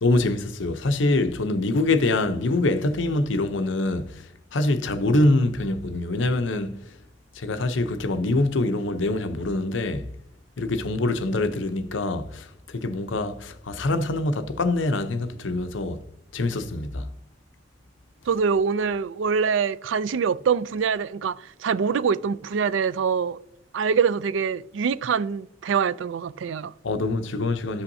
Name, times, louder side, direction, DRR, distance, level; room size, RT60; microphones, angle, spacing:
voice 1, 0.0-7.0 7.3-10.2 10.6-16.0 16.3-17.1 26.8-27.8, left 2 dB, 75° left, 0.7 m, -25 dB
voice 2, 18.3-23.4 23.7-26.7, right 6 dB, 75° right, 0.4 m, -24 dB
13.5 x 5.6 x 2.7 m
head